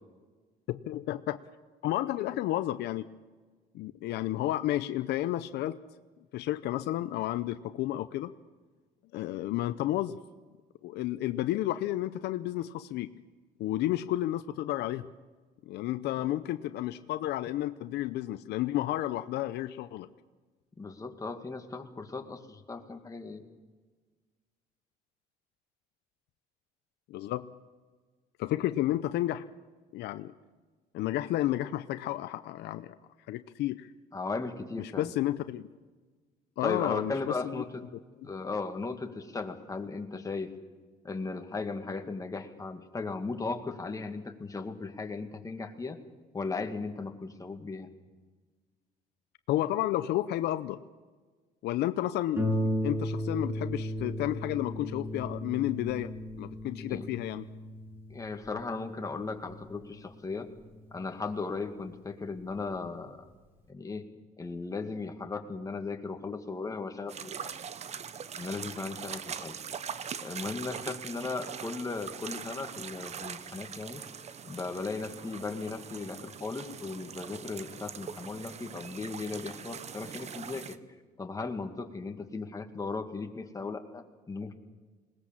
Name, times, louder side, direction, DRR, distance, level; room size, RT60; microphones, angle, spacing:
voice 1, 0.7-1.4 1.8-3.1 3.7-5.8 6.3-8.3 9.1-10.2 10.8-13.1 13.6-15.1 15.7-20.1 27.1-27.5 28.4-29.5 29.9-30.3 30.9-33.0 33.3-33.9 34.8-35.7 36.6-37.4 38.2-38.3 49.5-50.8 51.6-56.1 56.4-57.5, left 14 dB, 80° left, 12 dB, 0.7 m, -31 dB
voice 2, 20.8-23.4 34.1-35.1 36.6-37.8 38.2-40.5 41.0-46.0 46.3-47.9 56.9-57.1 58.1-60.5 60.9-63.2 63.7-64.1 64.4-67.5 68.4-69.6 70.2-74.0 74.4-80.8 81.2-84.5, left 4 dB, 20° left, 5 dB, 2.0 m, -37 dB
Harp, 52.4-61.5 62.4-62.5 62.9-63.0, equal, 15° right, 7.0 m, -36 dB
sound 1, 67.1-80.8, right 7 dB, 40° right, 0.9 m, -42 dB
20.5 x 19.0 x 7.4 m, 1.4 s
cardioid pair, 110°, 17 cm